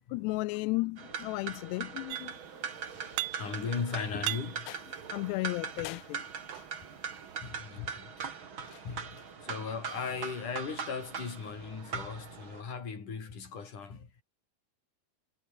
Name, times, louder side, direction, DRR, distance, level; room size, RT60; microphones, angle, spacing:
voice 1, 0.1-2.7 4.7-4.8 5.1-6.2 6.5-6.7 7.8-8.3 8.6-8.9, left 23 dB, 90° left, 2.7 m, -35 dB
sound 1, 1.0-12.6, right 6 dB, 40° right, 2.3 m, -41 dB
sound 2, 2.1-2.6 2.9-3.8 4.1-5.6 6.3-7.4, right 18 dB, 80° right, 2.8 m, -40 dB
voice 2, 3.3-4.7 7.4-8.2 8.8-14.1, left 5 dB, 50° left, 6.0 m, -38 dB
omnidirectional pair, 4.7 m